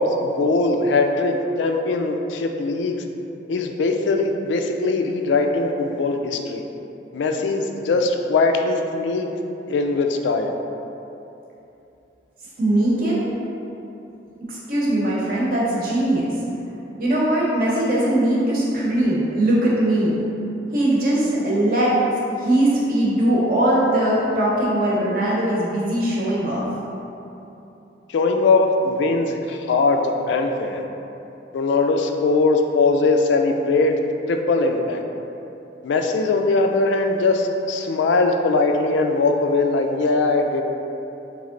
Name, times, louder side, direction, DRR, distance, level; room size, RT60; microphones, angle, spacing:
voice 1, 0.0-3.0 3.5-6.6 7.1-9.3 9.7-10.5 28.1-30.8 31.5-34.0 34.3-35.0 35.8-40.6, left 3 dB, 75° left, 4 dB, 0.3 m, -20 dB
voice 2, 12.6-13.2 14.5-16.3 17.0-20.1 20.7-21.9 22.3-26.7, right 1 dB, 50° right, -6 dB, 0.9 m, -20 dB
3.6 x 3.2 x 3.7 m, 2.9 s
head